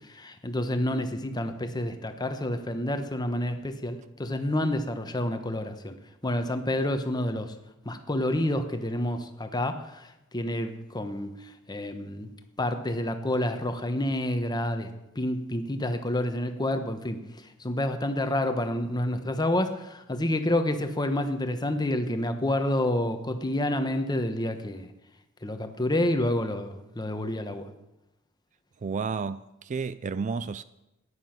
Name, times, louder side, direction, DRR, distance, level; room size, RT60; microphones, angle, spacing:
voice 1, 0.1-5.9 6.2-7.5 7.8-10.1 10.3-11.3 11.7-12.3 12.6-14.9 15.1-17.2 17.6-24.9 25.4-27.7, left 1 dB, 20° left, 1.1 m, -28 dB
voice 2, 28.8-30.6, right 5 dB, 35° right, 0.4 m, -31 dB
14.0 x 9.9 x 5.9 m
head